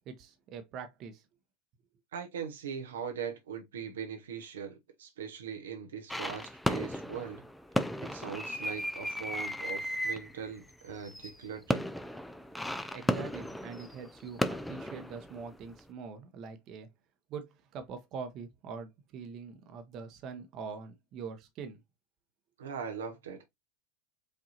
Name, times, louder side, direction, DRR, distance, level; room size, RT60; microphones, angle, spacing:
voice 1, 0.1-1.2 12.9-16.9 17.3-21.8, right 5 dB, 45° right, 0.9 m, -43 dB
voice 2, 2.1-7.4 8.0-11.9 22.6-23.4, right 7 dB, 80° right, 0.8 m, -40 dB
sound 1, 6.1-15.8, left 1 dB, 5° left, 0.4 m, -35 dB
5.0 x 2.7 x 2.8 m
hypercardioid pair, 95°, 0 cm